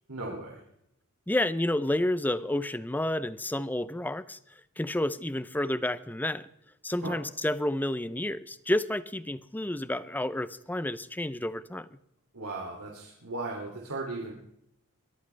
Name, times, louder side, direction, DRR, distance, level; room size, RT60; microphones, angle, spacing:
voice 1, 0.1-0.6 7.0-7.2 12.3-14.3, right 2 dB, 85° right, -1 dB, 2.8 m, -36 dB
voice 2, 1.3-4.4 4.8-6.5 6.8-12.0, left 1 dB, 10° left, 15 dB, 0.5 m, -30 dB
22.5 x 13.5 x 3.4 m, 0.77 s
head